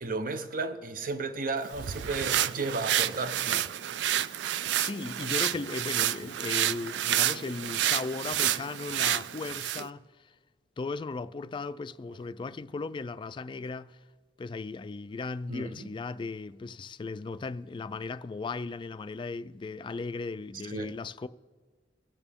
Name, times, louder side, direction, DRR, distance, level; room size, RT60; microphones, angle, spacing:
voice 1, 0.0-3.6 15.5-15.9 20.7-20.9, right 3 dB, 55° right, 0.8 m, -33 dB
sound 1, 1.6-9.9, right 11 dB, 85° right, 0.4 m, -29 dB
voice 2, 4.8-10.0 10.8-14.0 14.4-21.3, left 3 dB, 30° left, 0.3 m, -37 dB
23.5 x 8.9 x 3.6 m
head